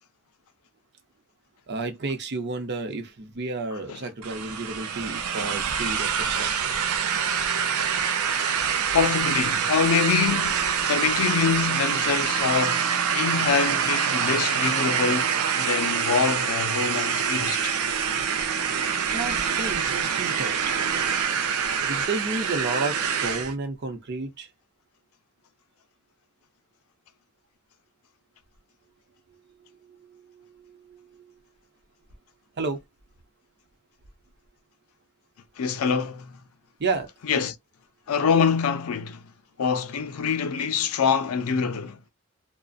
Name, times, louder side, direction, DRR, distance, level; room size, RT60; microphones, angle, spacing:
voice 1, 1.7-6.8 19.1-20.8 21.8-24.5 29.6-31.3 32.6-32.8 36.8-37.1, right 3 dB, 50° right, 0.7 m, -32 dB
sound 1, 4.2-23.5, right 7 dB, 90° right, 0.5 m, -25 dB
voice 2, 8.9-12.9 13.1-17.7 35.6-36.4 37.3-37.5 38.1-39.2 39.6-42.0, left 6 dB, 80° left, 0.4 m, -25 dB
2.5 x 2.1 x 2.4 m
head